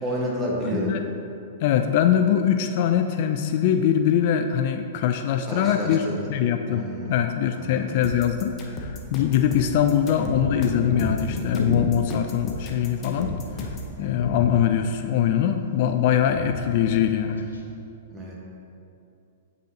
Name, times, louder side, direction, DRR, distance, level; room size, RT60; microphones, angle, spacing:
voice 1, 0.0-0.9 5.5-6.3 6.7-7.1 7.6-8.0 14.0-14.2 18.1-18.4, right 1 dB, 20° right, -3 dB, 1.3 m, -30 dB
voice 2, 0.7-1.0 1.6-6.0 6.3-13.3 14.0-17.5, left 9 dB, 55° left, 7 dB, 0.3 m, -22 dB
sound 1, 8.0-13.9, left 2 dB, 30° left, 0.8 m, -36 dB
sound 2, 10.1-15.0 15.3-15.9 16.2-17.0 17.3-17.6, left 2 dB, 85° left, 0.7 m, -31 dB
8.8 x 4.1 x 2.8 m, 2.7 s
hypercardioid pair, 115°, 0 cm